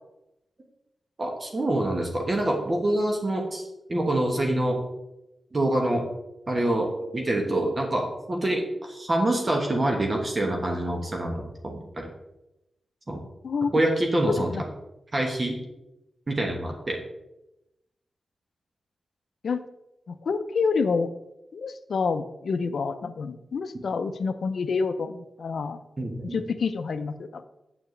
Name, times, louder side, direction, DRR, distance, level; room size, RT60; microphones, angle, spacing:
voice 1, 1.2-4.8 5.5-6.0 6.5-12.1 13.1-13.2 13.7-14.5 15.1-15.5 16.3-17.0 26.0-26.4, right 1 dB, 30° right, 1 dB, 1.2 m, -26 dB
voice 2, 14.3-14.6 19.4-19.6 20.1-21.1 21.5-25.8 26.3-27.4, left 5 dB, 75° left, 10 dB, 0.5 m, -28 dB
7.7 x 7.0 x 3.2 m, 0.92 s
wide cardioid pair, 125°, 0 cm